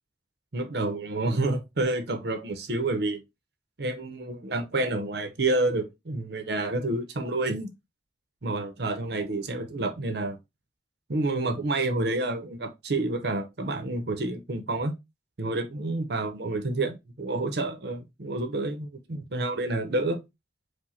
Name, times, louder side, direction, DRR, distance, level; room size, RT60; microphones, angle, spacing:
voice 1, 0.5-3.2 3.8-7.7 8.4-10.4 11.1-14.9 15.4-20.2, right 2 dB, 60° right, 0.8 m, -29 dB
4.8 x 2.3 x 4.1 m
head